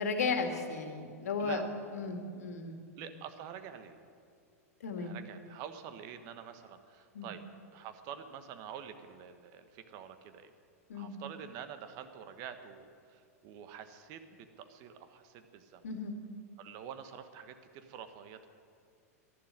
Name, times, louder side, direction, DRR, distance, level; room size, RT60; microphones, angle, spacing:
voice 1, 0.0-1.6 1.9-2.8 4.8-5.2 7.1-7.3 10.9-11.2 15.8-16.2, left 4 dB, 75° left, 5 dB, 1.9 m, -35 dB
voice 2, 3.0-4.0 5.0-7.4 7.7-10.5 10.9-15.8 16.6-18.5, right 8 dB, 45° right, 9 dB, 1.3 m, -47 dB
12.0 x 11.5 x 9.7 m, 2.2 s
hypercardioid pair, 95°, 8 cm